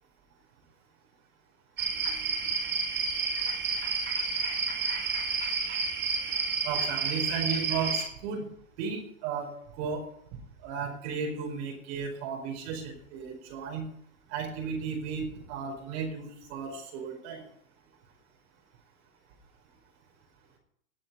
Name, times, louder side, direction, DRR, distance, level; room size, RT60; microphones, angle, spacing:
sound 1, 1.8-8.0, right 4 dB, 25° right, 4.7 m, -30 dB
voice 1, 6.6-8.5 8.8-10.0 10.6-13.9 14.3-17.4, right 5 dB, 50° right, 1 dB, 4.9 m, -34 dB
18.5 x 7.8 x 5.6 m, 0.72 s
hypercardioid pair, 110°, 41 cm